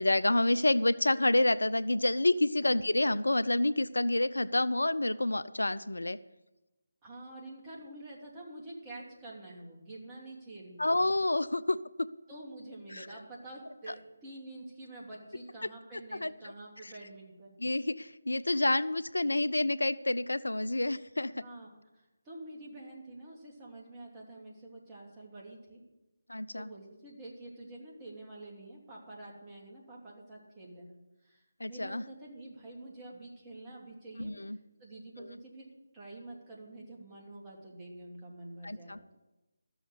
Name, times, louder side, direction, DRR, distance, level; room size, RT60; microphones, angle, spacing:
voice 1, 0.0-6.2 10.8-12.1 12.9-13.1 16.2-16.3 16.8-16.9 17.6-21.3 26.3-26.7 31.6-32.0 34.2-34.6 38.6-39.0, left 2 dB, 80° left, 16 dB, 0.4 m, -28 dB
voice 2, 7.0-11.0 12.3-17.6 21.3-25.8 26.5-31.0 31.2-34.3 34.8-35.7 35.9-39.0, right 2 dB, 20° right, -3 dB, 2.8 m, -48 dB
13.0 x 7.1 x 8.3 m, 1.0 s
figure-of-eight pair, 155°, 0 cm